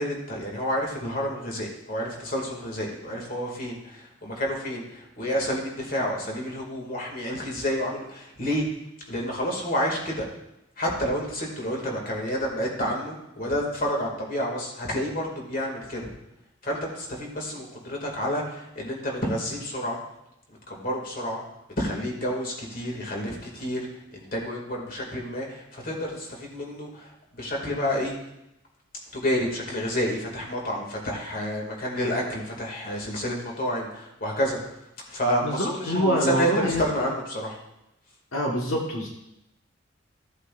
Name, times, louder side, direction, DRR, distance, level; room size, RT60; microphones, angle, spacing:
voice 1, 0.0-8.6 9.1-10.3 10.8-16.1 16.6-20.0 20.7-21.4 21.8-28.1 29.1-34.6 35.1-37.6, equal, 45° left, -1 dB, 2.3 m, -29 dB
voice 2, 35.4-36.8 38.3-39.1, equal, 75° left, -2 dB, 1.5 m, -25 dB
15.5 x 8.1 x 2.5 m, 0.87 s
head